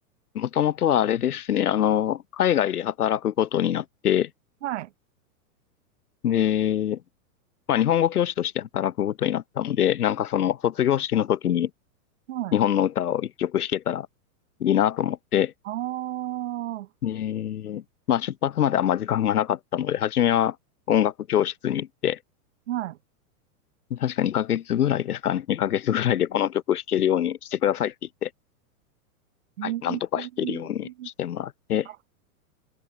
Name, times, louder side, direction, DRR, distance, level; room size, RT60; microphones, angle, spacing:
voice 1, 0.3-4.3 6.2-7.0 7.7-11.7 12.5-14.1 14.6-15.5 17.0-20.6 20.9-22.2 23.9-27.9 28.2-28.3 29.6-31.9, left 10 dB, 85° left, 7.4 m, -24 dB
voice 2, 15.6-16.9 22.7-23.0 29.6-31.1 31.9-32.0, right 14 dB, 50° right, 3.5 m, -32 dB
open air
supercardioid pair, 180°, 44 cm